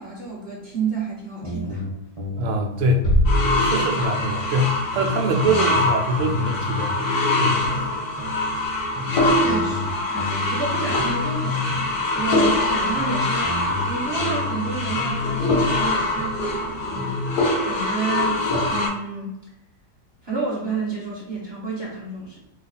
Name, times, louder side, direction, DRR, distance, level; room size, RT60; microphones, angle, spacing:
voice 1, 0.0-1.8 9.3-19.3 20.2-22.4, right 4 dB, 15° right, -7 dB, 1.2 m, -30 dB
sound 1, 1.4-3.9 4.2-7.9 8.2-11.9 12.2-15.9 16.2-17.2, left 3 dB, 35° right, 0.6 m, -31 dB
voice 2, 2.3-3.1 3.6-6.9 7.4-7.7, right 1 dB, 70° right, 3 dB, 0.7 m, -23 dB
sound 2, 3.0-4.6, equal, 50° left, 0.9 m, -22 dB
sound 3, 3.3-18.9, left 2 dB, 75° left, 1.3 m, -24 dB
2.8 x 2.3 x 4.0 m, 0.91 s
omnidirectional pair, 1.7 m